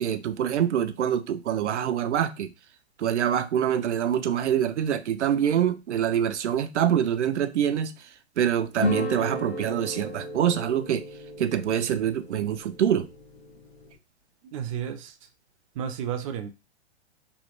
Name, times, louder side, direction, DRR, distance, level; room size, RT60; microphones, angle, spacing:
voice 1, 0.0-2.5 3.0-7.9 8.4-11.0 11.4-13.1, right 9 dB, 90° right, 0.5 m, -25 dB
sound 1, 8.8-14.0, left 3 dB, 75° left, 1.1 m, -35 dB
voice 2, 14.5-15.1 15.8-16.5, right 8 dB, 30° right, 0.4 m, -32 dB
3.1 x 2.2 x 3.0 m
hypercardioid pair, 130°, 34 cm